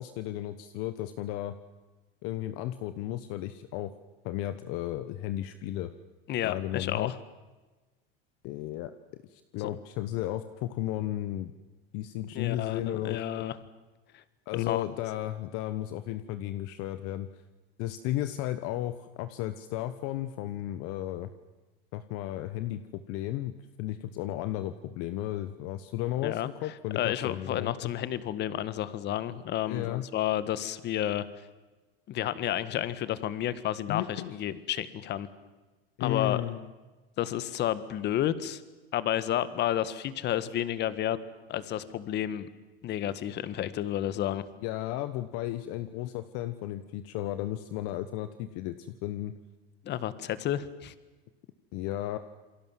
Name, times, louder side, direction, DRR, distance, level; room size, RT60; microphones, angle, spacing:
voice 1, 0.0-1.5 2.2-3.9 4.2-5.9 6.4-7.1 8.4-8.9 9.3-11.5 11.9-13.5 14.5-17.3 17.8-21.3 21.9-27.9 29.7-30.0 33.9-34.4 36.0-36.7 44.6-49.3 51.7-52.2, left 14 dB, 50° left, 12 dB, 1.2 m, -34 dB
voice 2, 6.3-7.2 12.3-13.6 14.5-14.8 26.2-26.5 26.9-31.3 32.1-35.3 36.0-36.4 37.2-38.6 38.9-41.2 41.5-42.5 42.8-44.4 49.8-50.9, left 12 dB, 35° left, 15 dB, 1.6 m, -31 dB
28.0 x 22.5 x 7.6 m, 1.2 s
supercardioid pair, 135°, 29 cm